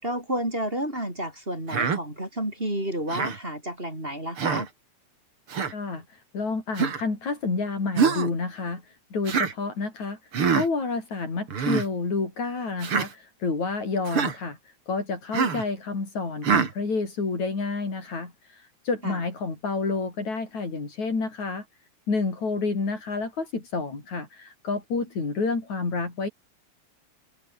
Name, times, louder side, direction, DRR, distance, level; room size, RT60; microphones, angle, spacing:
voice 1, 0.0-4.7 19.0-19.2, right 1 dB, 15° right, 6.4 m, -30 dB
Human voice, 1.7-2.0 3.1-3.4 4.4-4.7 5.5-5.7 6.8-7.0 8.0-8.3 9.3-9.5 10.3-10.7 11.5-11.9 12.8-13.1 14.1-14.4 15.3-15.6 16.4-16.7, right 6 dB, 45° right, 3.2 m, -24 dB
voice 2, 5.7-6.1 6.3-8.8 9.1-10.2 10.5-14.6 14.9-18.3 18.9-21.6 22.1-26.3, left 4 dB, 70° left, 7.3 m, -29 dB
omnidirectional pair, 3.4 m